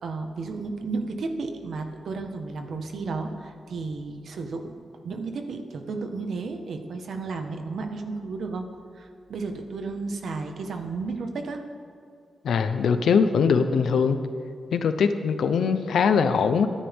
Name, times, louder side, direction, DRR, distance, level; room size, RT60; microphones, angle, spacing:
voice 1, 0.0-4.7 5.0-8.7 8.9-11.6, right 3 dB, 75° right, 5 dB, 1.5 m, -33 dB
voice 2, 12.4-14.2 14.7-16.7, left 6 dB, 90° left, 9 dB, 0.8 m, -21 dB
24.5 x 10.0 x 3.7 m, 2.3 s
wide cardioid pair, 110°, 0 cm